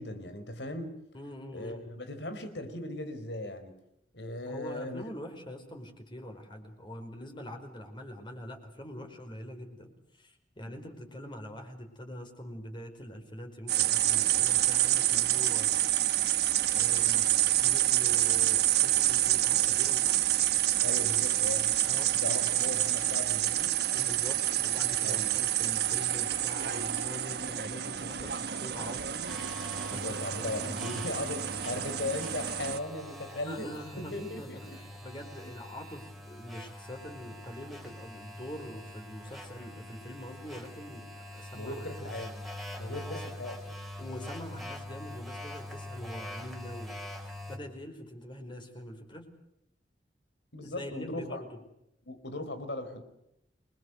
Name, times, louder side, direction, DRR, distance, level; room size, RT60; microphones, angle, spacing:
voice 1, 0.0-1.0 1.5-3.7 4.1-5.1 20.8-21.8 22.2-23.7 25.0-25.4 29.9-33.7 33.9-34.8 39.6-39.7 41.5-42.4 42.8-43.8 50.5-51.4 52.1-53.0, left 2 dB, 80° left, 9 dB, 4.4 m, -38 dB
voice 2, 1.1-1.9 4.5-15.9 16.7-20.2 21.8-22.2 22.5-22.6 23.9-29.3 29.9-30.0 33.5-42.1 42.9-43.1 44.0-49.3 50.6-51.6, equal, 25° left, 5 dB, 4.8 m, -44 dB
sound 1, 13.7-32.8, right 13 dB, 65° right, 1.2 m, -28 dB
sound 2, 29.3-47.6, left 1 dB, ahead, 4.0 m, -44 dB
28.5 x 22.5 x 8.0 m, 0.81 s
head